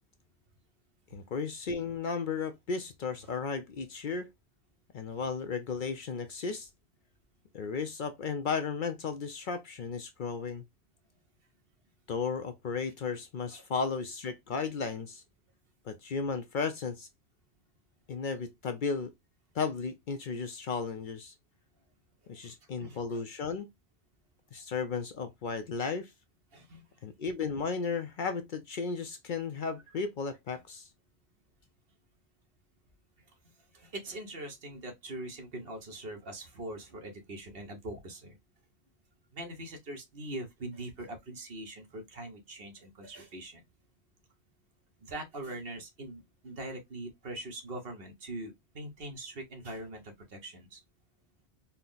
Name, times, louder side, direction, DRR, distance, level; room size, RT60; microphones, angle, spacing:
voice 1, 1.1-4.3 4.9-6.7 7.5-10.6 12.1-15.2 15.9-17.1 18.1-19.1 19.5-21.3 22.3-23.7 24.5-26.1 27.0-30.9, left 5 dB, 60° left, 0.6 m, -34 dB
voice 2, 22.8-23.2 26.5-26.8 29.9-30.0 33.7-38.4 39.3-43.6 45.0-50.8, right 1 dB, 60° right, 1.3 m, -42 dB
4.2 x 2.0 x 3.8 m
omnidirectional pair, 1.1 m